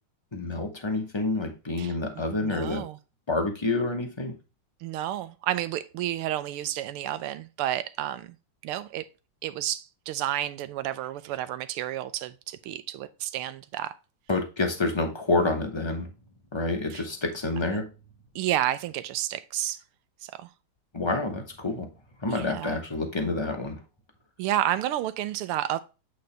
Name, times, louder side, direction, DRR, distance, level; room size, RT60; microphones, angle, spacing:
voice 1, 0.3-2.8 3.3-4.3 14.3-16.1 16.5-17.9 20.9-21.9 22.2-23.8, left 2 dB, 40° left, 0.4 m, -28 dB
voice 2, 2.4-3.0 4.8-8.4 8.6-9.0 9.4-13.9 16.9-17.0 18.3-19.8 20.2-20.5 22.3-22.8 24.4-25.8, right 13 dB, 90° right, 1.6 m, -31 dB
8.7 x 3.9 x 3.3 m
omnidirectional pair, 2.4 m